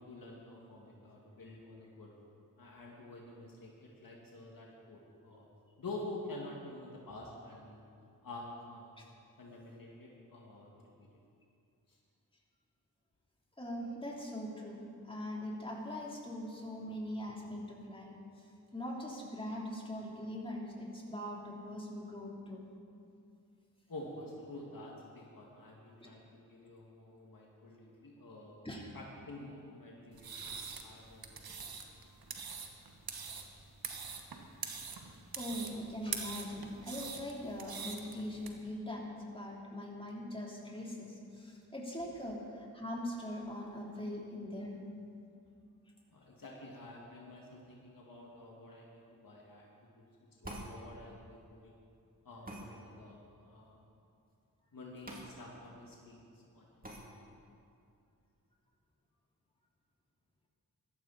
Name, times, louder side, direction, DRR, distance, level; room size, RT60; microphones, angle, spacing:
voice 1, 0.0-2.1 2.6-5.5 5.8-7.8 8.2-8.9 9.4-10.7 11.0-11.1 11.9-12.0 23.9-28.6 28.9-30.5 30.8-31.7 46.1-50.1 50.4-51.7 52.2-53.8 54.7-56.9, left 2 dB, 65° left, -3 dB, 2.2 m, -49 dB
voice 2, 13.6-18.1 18.4-18.5 18.7-22.6 26.0-26.1 28.6-28.8 35.4-44.8 56.8-56.9, left 1 dB, 15° left, -4 dB, 3.5 m, -42 dB
sound 1, 30.1-38.5, right 5 dB, 70° right, 1.3 m, -44 dB
sound 2, 50.4-50.7 52.5-52.7 55.1-55.3 55.6-55.7 56.8-57.0, right 1 dB, 25° right, 2.8 m, -44 dB
15.0 x 13.5 x 4.2 m, 2.5 s
cardioid pair, 40°, 37 cm